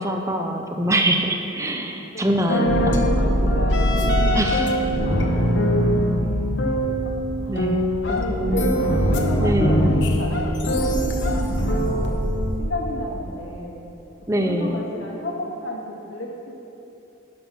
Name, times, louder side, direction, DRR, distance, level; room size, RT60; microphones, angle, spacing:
voice 1, 0.0-3.0 4.3-4.7 7.5-8.7 9.4-9.9 14.3-14.8, right 1 dB, 15° right, 4 dB, 0.5 m, -24 dB
voice 2, 1.7-5.3 6.1-12.2 12.6-13.9 14.4-16.5, left 1 dB, 85° left, -2 dB, 1.8 m, -33 dB
sound 1, 2.5-12.6, equal, 65° left, 0.9 m, -21 dB
11.5 x 5.9 x 5.6 m, 3.0 s
head